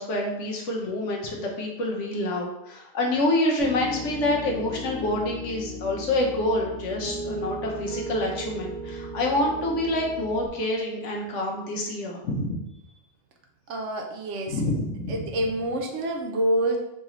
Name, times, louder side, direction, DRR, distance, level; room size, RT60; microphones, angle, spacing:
voice 1, 0.0-12.6 14.5-15.3, left 1 dB, 70° left, -1 dB, 1.2 m, -27 dB
Piano, 3.6-10.5, right 1 dB, 45° left, 1.4 m, -36 dB
voice 2, 13.7-14.6 15.1-16.8, right 1 dB, 70° right, 2 dB, 1.0 m, -27 dB
4.0 x 3.1 x 3.7 m, 0.86 s
omnidirectional pair, 1.3 m